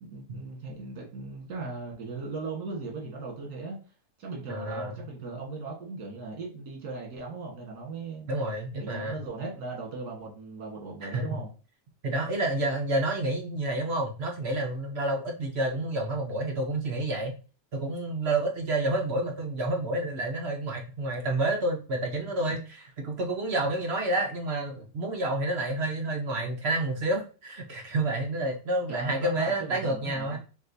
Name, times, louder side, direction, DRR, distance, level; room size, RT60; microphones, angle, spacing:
voice 1, 0.0-3.8 4.2-8.3 8.8-11.5 28.9-30.4, right 3 dB, 75° right, 1.9 m, -38 dB
voice 2, 4.5-4.9 8.3-9.1 11.0-11.4 12.0-17.3 17.7-22.6 23.0-30.4, right 2 dB, 55° right, 0.8 m, -29 dB
5.8 x 2.4 x 2.6 m
omnidirectional pair, 1.7 m